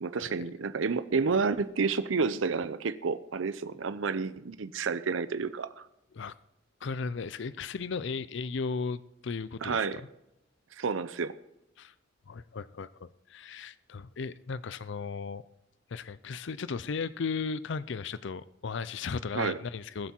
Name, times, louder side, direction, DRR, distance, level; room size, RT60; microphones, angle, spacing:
voice 1, 0.0-5.9 9.6-10.0 10.7-11.3 19.3-19.6, right 4 dB, 90° right, 0.6 m, -30 dB
voice 2, 6.8-9.9 11.8-11.9 12.3-15.4 15.9-20.1, left 5 dB, 65° left, 0.5 m, -36 dB
20.5 x 8.3 x 4.4 m
head